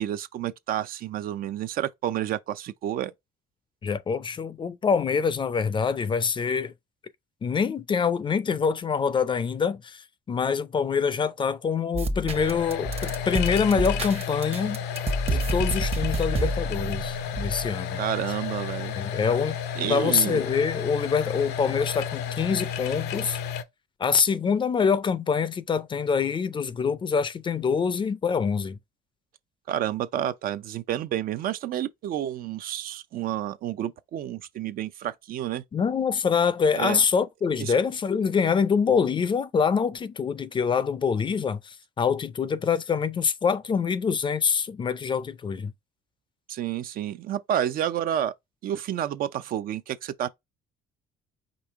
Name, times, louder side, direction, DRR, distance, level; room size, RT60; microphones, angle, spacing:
voice 1, 0.0-3.1 18.0-18.9 19.8-20.4 29.7-35.6 36.7-37.0 37.6-37.7 46.5-48.3 48.6-50.3, right 11 dB, 60° right, 0.4 m, -30 dB
voice 2, 3.8-6.7 7.4-14.8 15.3-18.0 18.9-19.6 19.9-23.4 24.0-28.8 35.7-45.7, left 6 dB, 30° left, 0.4 m, -25 dB
sound 1, 11.9-17.7, right 2 dB, 35° right, 0.8 m, -29 dB
sound 2, 12.3-23.6, left 8 dB, 80° left, 0.6 m, -32 dB
5.1 x 2.8 x 3.5 m
cardioid pair, 110°, 17 cm